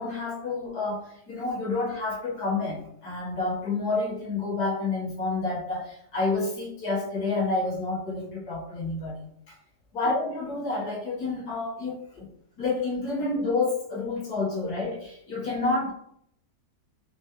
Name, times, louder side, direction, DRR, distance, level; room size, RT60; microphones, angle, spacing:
voice 1, 0.0-9.3 9.9-12.3 12.6-15.9, left 3 dB, 65° left, -6 dB, 1.8 m, -29 dB
5.0 x 2.3 x 3.0 m, 0.71 s
omnidirectional pair, 1.8 m